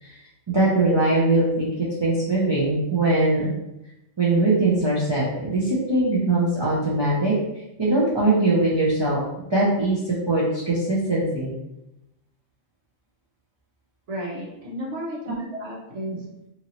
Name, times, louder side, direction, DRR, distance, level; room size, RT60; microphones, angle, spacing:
voice 1, 0.5-3.5 4.2-7.3 7.8-9.2 9.5-11.5, right 2 dB, 30° right, -7 dB, 0.5 m, -21 dB
voice 2, 14.1-16.2, equal, 70° right, -5 dB, 1.3 m, -33 dB
3.0 x 2.6 x 2.9 m, 0.89 s
omnidirectional pair, 1.3 m